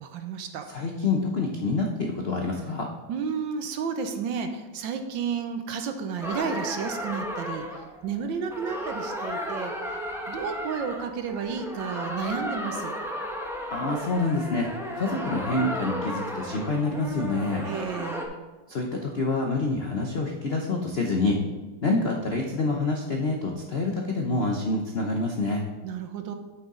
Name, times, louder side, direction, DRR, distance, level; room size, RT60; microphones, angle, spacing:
voice 1, 0.0-0.7 3.1-7.6 8.0-10.0 10.3-12.9 17.6-18.3 25.8-26.4, right 6 dB, 70° right, 6 dB, 1.3 m, -32 dB
voice 2, 0.7-2.9 13.7-14.7 14.9-17.6 18.7-21.4 21.8-25.6, left 3 dB, 70° left, 1 dB, 0.5 m, -27 dB
sound 1, 6.2-18.3, equal, 5° right, 0.5 m, -34 dB
9.3 x 6.9 x 3.8 m, 1.2 s
omnidirectional pair, 2.3 m